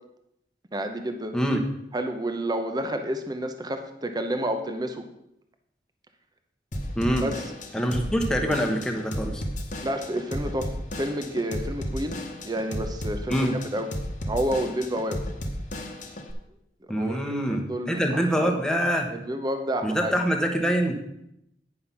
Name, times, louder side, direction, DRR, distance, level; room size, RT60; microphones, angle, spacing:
voice 1, 0.7-1.4 1.9-5.0 7.2-7.3 9.8-13.9 14.3-15.2 16.9-18.6 19.1-20.1, right 1 dB, 25° right, 6 dB, 0.7 m, -30 dB
Drum kit / Drum, 6.7-16.3, equal, 45° left, 1.1 m, -34 dB
voice 2, 7.7-9.4 13.3-13.5 16.9-19.1 19.8-21.0, equal, 5° left, 1 dB, 1.1 m, -25 dB
9.6 x 5.7 x 5.7 m, 0.81 s
head